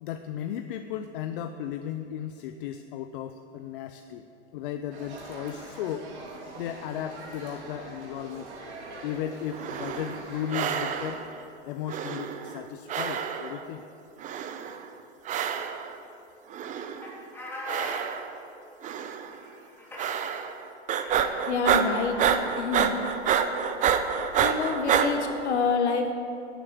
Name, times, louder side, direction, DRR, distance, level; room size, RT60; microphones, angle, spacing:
voice 1, 0.0-4.2 4.5-6.1 6.6-8.5 9.0-11.2 11.7-13.8, left 10 dB, 50° left, 8 dB, 0.7 m, -35 dB
sound 1, 4.9-11.1, right 2 dB, 70° right, 3.5 m, -43 dB
sound 2, 9.5-10.2 10.5-11.3 11.9-12.6 12.9-13.6 14.2-14.8 15.2-15.9 16.5-17.1 17.6-18.4 18.8-19.3 20.0-20.6 20.9-25.1, right 8 dB, 20° right, 0.7 m, -28 dB
sound 3, 17.0-18.0 19.0-19.1 19.3-20.1 21.0-21.2, left 2 dB, 5° left, 3.2 m, -40 dB
voice 2, 21.5-22.2 22.6-22.9 24.4-26.2, left 5 dB, 70° left, 3 dB, 2.1 m, -27 dB
11.0 x 9.2 x 9.8 m, 2.8 s
hypercardioid pair, 120°, 35 cm